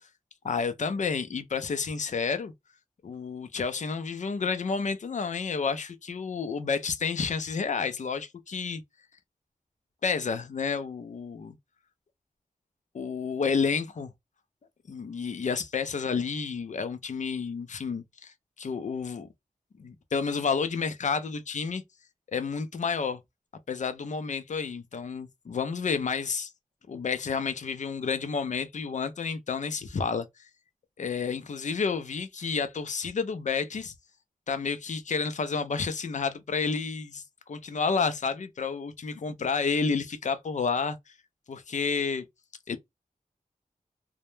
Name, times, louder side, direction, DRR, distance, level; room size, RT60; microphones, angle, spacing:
voice 1, 0.4-2.5 3.0-8.8 10.0-11.6 12.9-14.1 14.9-19.3 19.8-21.8 22.3-23.2 23.7-26.5 26.9-30.3 31.0-33.9 34.5-37.2 37.5-41.0 41.5-42.2 42.7-42.8, left 5 dB, 60° left, 0.4 m, -30 dB
2.1 x 2.0 x 3.0 m
wide cardioid pair, 85°, 14 cm